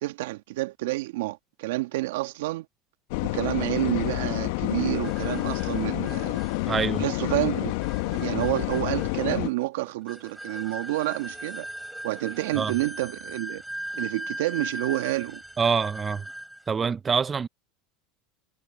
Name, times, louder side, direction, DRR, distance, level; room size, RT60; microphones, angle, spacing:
voice 1, 0.0-2.7 3.2-6.4 7.0-7.7 8.0-11.7 12.0-13.6 13.9-15.4, right 19 dB, 75° right, 2.0 m, -29 dB
sound 1, 3.1-9.5, left 22 dB, 70° left, 1.3 m, -28 dB
sound 2, 4.8-16.7, right 1 dB, 5° right, 5.8 m, -40 dB
voice 2, 6.7-7.0 12.6-12.7 15.6-16.3 16.7-17.5, right 6 dB, 25° right, 0.6 m, -25 dB
hypercardioid pair, 95°, 0 cm